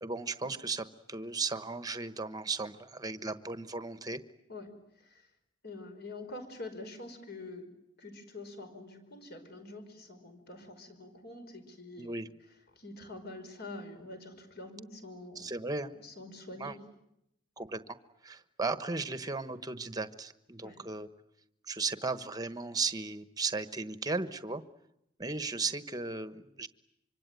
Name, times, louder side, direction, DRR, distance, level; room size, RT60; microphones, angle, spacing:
voice 1, 0.0-4.2 12.0-12.3 15.3-15.9 16.6-16.7 17.6-17.8 18.2-21.1 21.7-24.6 25.2-26.7, right 3 dB, 20° right, 12 dB, 1.2 m, -36 dB
voice 2, 4.5-5.3 5.6-7.7 8.0-12.1 12.7-15.5 15.9-16.8 20.6-20.8, left 2 dB, 55° left, 6 dB, 5.3 m, -46 dB
25.5 x 25.0 x 9.3 m, 0.81 s
head